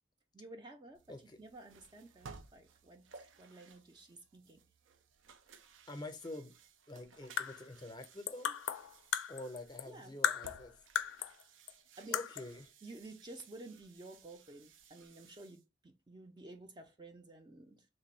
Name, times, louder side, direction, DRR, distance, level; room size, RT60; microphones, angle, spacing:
voice 1, 0.3-4.6 9.9-10.1 12.0-12.2 12.8-17.9, right 2 dB, 25° right, 0.4 m, -52 dB
sound 1, 0.9-15.6, right 5 dB, 90° right, 0.5 m, -59 dB
voice 2, 1.1-1.4 5.9-6.5 6.9-8.6 9.3-10.7 12.1-12.7, left 2 dB, 20° left, 0.6 m, -47 dB
sound 2, 7.1-9.9 10.2-11.4 11.7-11.8 12.1-12.6, left 9 dB, 85° left, 0.4 m, -36 dB
3.3 x 2.2 x 4.2 m
head